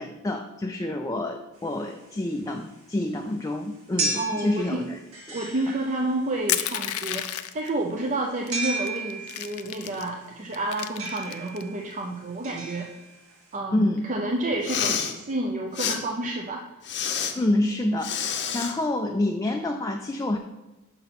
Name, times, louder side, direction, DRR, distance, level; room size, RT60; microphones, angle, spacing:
voice 1, 0.0-5.0 13.7-14.1 17.4-20.4, left 1 dB, 15° left, 4 dB, 0.4 m, -27 dB
sound 1, 1.6-13.5, right 2 dB, 85° right, 1.7 m, -36 dB
voice 2, 4.1-4.9 5.3-12.9 13.5-16.6, right 2 dB, 35° right, 0 dB, 0.6 m, -30 dB
Crushing, 6.5-7.7 8.5-8.6 8.9-10.1 10.5-11.6, left 12 dB, 90° left, 0.5 m, -30 dB
Respiratory sounds, 14.5-15.1 15.7-16.0 16.8-17.3 18.0-18.7, left 8 dB, 55° left, 0.7 m, -28 dB
5.7 x 5.5 x 5.9 m, 1.1 s
head